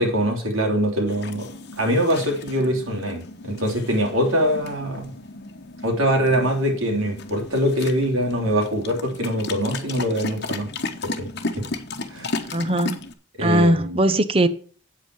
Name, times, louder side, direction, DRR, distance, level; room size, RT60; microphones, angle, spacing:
voice 1, 0.0-1.5 1.8-5.1 5.8-10.7 11.0-11.3 11.6-11.7 12.1-12.3 13.4-14.0, equal, 85° right, 3.3 m, -23 dB
sound 1, 1.1-13.1, left 3 dB, 50° left, 1.1 m, -34 dB
voice 2, 12.5-13.0 13.4-14.5, right 1 dB, 25° right, 0.8 m, -19 dB
8.5 x 8.0 x 4.7 m
head